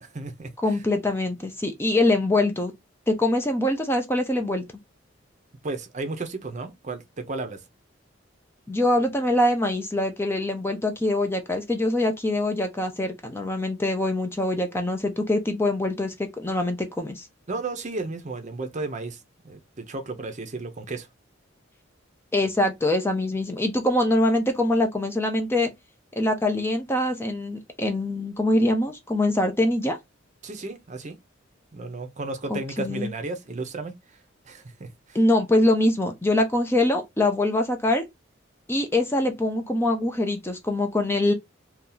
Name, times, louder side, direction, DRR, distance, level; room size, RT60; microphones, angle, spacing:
voice 1, 0.0-0.8 5.6-7.6 17.5-21.1 30.4-31.2 31.7-34.0 34.5-35.2, right 3 dB, 35° right, 0.6 m, -34 dB
voice 2, 0.6-2.7 3.1-4.6 8.7-17.3 22.3-25.7 26.2-30.0 32.5-33.1 35.1-38.0 38.7-41.3, left 1 dB, 10° left, 0.5 m, -24 dB
2.7 x 2.3 x 3.8 m
head